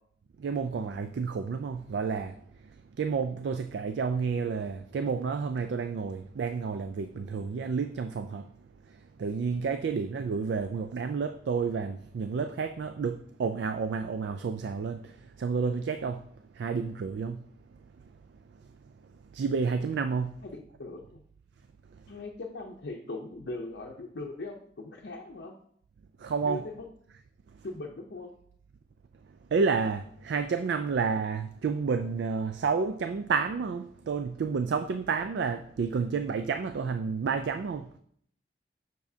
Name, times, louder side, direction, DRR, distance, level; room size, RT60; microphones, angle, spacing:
voice 1, 0.4-2.3 3.0-8.5 9.2-16.2 16.6-17.4 19.3-20.3 26.2-26.6 29.5-38.0, right 5 dB, 70° right, 0.3 m, -30 dB
voice 2, 20.4-21.2 22.1-25.6 26.4-26.9 27.6-28.3, left 2 dB, 65° left, 0.6 m, -40 dB
7.0 x 6.2 x 2.7 m
head